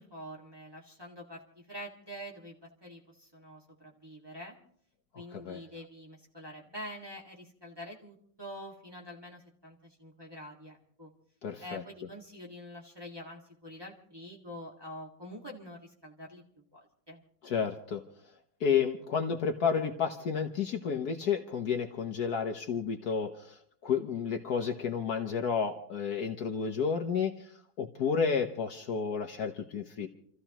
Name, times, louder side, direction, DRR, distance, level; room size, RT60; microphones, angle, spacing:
voice 1, 0.0-4.6 5.2-11.1 11.6-17.2, equal, 15° right, -3 dB, 1.8 m, -46 dB
voice 2, 11.4-11.8 17.4-18.0 18.6-27.5 27.8-30.1, left 6 dB, 60° left, 5 dB, 1.3 m, -31 dB
29.0 x 14.5 x 2.9 m, 0.64 s
omnidirectional pair, 2.1 m